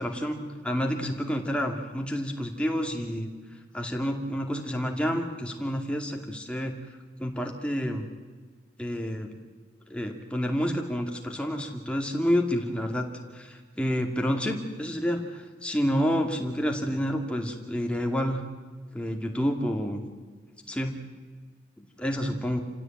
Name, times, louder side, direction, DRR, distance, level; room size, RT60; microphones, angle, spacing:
voice 1, 0.0-3.3 3.7-6.7 7.2-8.1 8.8-9.3 9.9-13.1 13.3-18.4 18.9-20.0 20.7-20.9 21.8-22.6, equal, 5° left, 2 dB, 2.4 m, -29 dB
28.5 x 17.0 x 9.0 m, 1.5 s
head